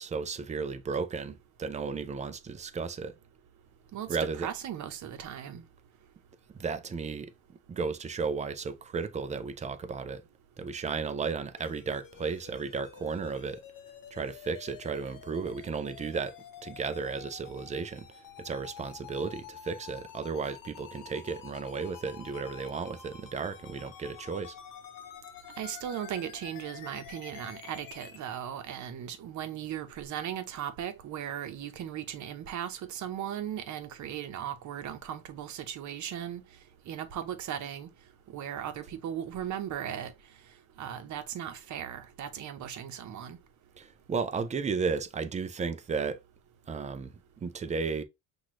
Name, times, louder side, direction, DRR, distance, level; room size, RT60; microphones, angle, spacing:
voice 1, 0.0-3.1 4.1-4.5 6.5-7.3 7.7-10.2 10.6-13.6 14.1-16.4 16.6-18.1 18.4-24.5 43.8-46.2 46.7-47.1 47.4-48.0, right 5 dB, 20° right, 0.4 m, -34 dB
voice 2, 4.4-5.6 25.6-36.4 36.9-37.9 38.3-40.1 40.8-43.4, right 10 dB, 45° right, 0.9 m, -37 dB
sound 1, 11.6-28.2, left 10 dB, 50° left, 0.9 m, -49 dB
5.9 x 2.5 x 3.1 m
cardioid pair, 130°, 41 cm